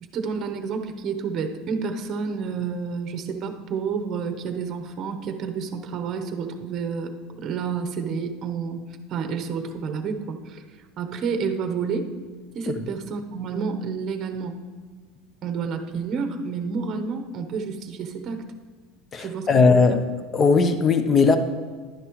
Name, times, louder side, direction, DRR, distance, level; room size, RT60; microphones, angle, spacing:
voice 1, 0.0-7.1 7.4-8.8 9.1-10.6 11.0-12.1 12.5-14.6 15.4-18.4 19.2-20.0, right 5 dB, 35° right, 6 dB, 0.9 m, -29 dB
voice 2, 19.1-20.0 20.3-21.4, left 4 dB, 25° left, 9 dB, 0.7 m, -18 dB
11.5 x 9.9 x 3.1 m, 1.5 s
supercardioid pair, 140°, 0 cm